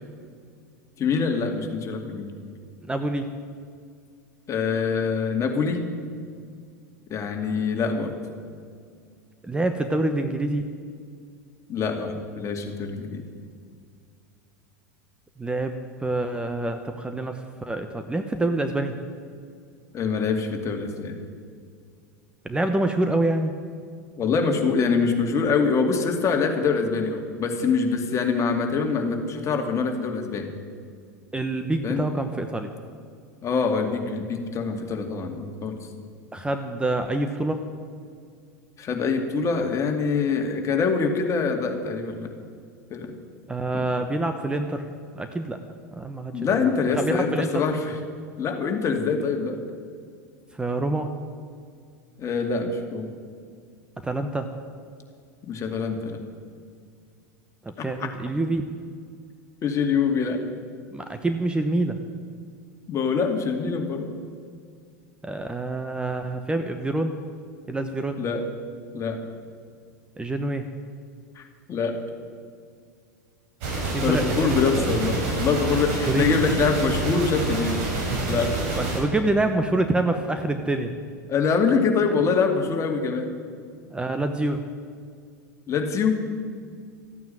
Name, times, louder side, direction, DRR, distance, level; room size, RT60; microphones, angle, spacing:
voice 1, 1.0-2.3 4.5-5.8 7.1-8.1 11.7-13.2 19.9-21.2 24.2-30.5 31.8-32.0 33.4-35.8 38.8-42.3 42.9-43.1 43.7-43.8 46.3-48.0 48.4-49.6 52.2-53.1 55.5-56.2 57.8-58.1 59.6-60.4 62.9-64.1 68.2-68.5 68.9-69.2 71.4-71.5 71.7-71.9 74.0-77.8 78.3-78.5 81.3-83.3 85.7-86.2, left 5 dB, 35° left, 3 dB, 2.4 m, -24 dB
voice 2, 2.9-3.3 9.4-10.6 15.4-18.9 22.4-23.5 31.3-32.7 36.3-37.6 43.5-44.9 45.1-45.6 46.0-47.6 50.6-51.1 54.0-54.5 57.8-58.7 60.9-62.0 65.2-67.2 67.7-68.2 70.2-70.6 73.9-74.9 76.1-76.3 78.8-80.9 83.9-84.6, right 2 dB, 10° right, 7 dB, 1.0 m, -26 dB
sound 1, 73.6-79.0, right 2 dB, 60° right, 4.7 m, -27 dB
14.0 x 9.3 x 9.1 m, 2.1 s
hypercardioid pair, 90°, 9 cm